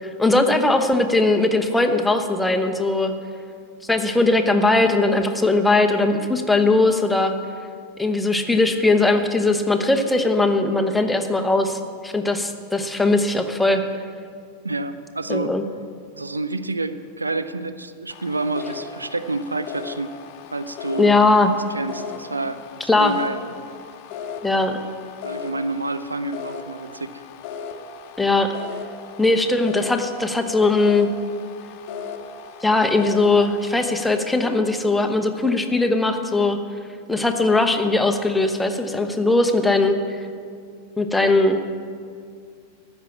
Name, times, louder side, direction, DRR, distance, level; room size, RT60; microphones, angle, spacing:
voice 1, 0.0-3.1 3.9-7.3 8.0-13.8 15.3-15.6 21.0-21.5 22.9-23.2 24.4-24.8 28.2-28.5 29.2-31.1 32.6-36.6 37.1-40.0 41.0-41.6, left 2 dB, 5° left, 5 dB, 1.0 m, -19 dB
voice 2, 14.6-15.5 16.1-20.1 20.5-21.1 21.7-22.6 23.0-23.4 25.2-27.2, right 2 dB, 80° right, 12 dB, 0.5 m, -28 dB
sound 1, 18.1-34.1, left 6 dB, 45° left, 1.0 m, -37 dB
14.0 x 6.2 x 8.6 m, 2.2 s
figure-of-eight pair, 90°, 0 cm